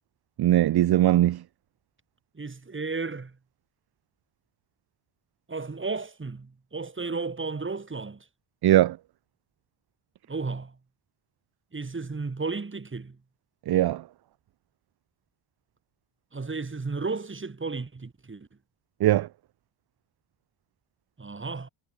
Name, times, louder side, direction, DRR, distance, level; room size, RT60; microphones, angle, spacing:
voice 1, 0.4-1.4 8.6-9.0 13.7-14.0 19.0-19.3, right 13 dB, 50° right, 0.5 m, -20 dB
voice 2, 2.3-3.4 5.5-8.3 10.3-10.8 11.7-13.2 16.3-18.5 21.2-21.7, right 4 dB, 25° right, 5.9 m, -33 dB
wide cardioid pair, 165°, 50 cm